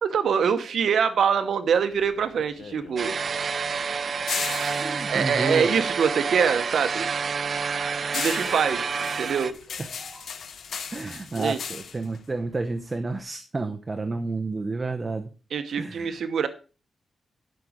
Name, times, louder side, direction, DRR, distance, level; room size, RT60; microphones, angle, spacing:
voice 1, 0.0-3.2 5.1-7.1 8.1-8.9 9.2-9.5 11.3-11.6 15.5-16.5, right 6 dB, 75° right, 9 dB, 0.8 m, -24 dB
sound 1, 1.9-6.4 6.8-13.2, left 6 dB, 75° left, 1.1 m, -37 dB
sound 2, 3.0-9.5, right 5 dB, 50° right, 0.5 m, -29 dB
sound 3, 3.5-3.8 4.1-4.4 4.7-5.0 5.3-5.6 5.9-6.2 6.5-6.8 7.1-7.4 7.7-10.4, equal, 15° left, 2.7 m, -51 dB
voice 2, 4.8-5.7 10.9-15.3 15.8-16.2, right 3 dB, 25° right, 6 dB, 0.9 m, -30 dB
12.0 x 6.0 x 4.9 m, 0.34 s
wide cardioid pair, 140°, 0 cm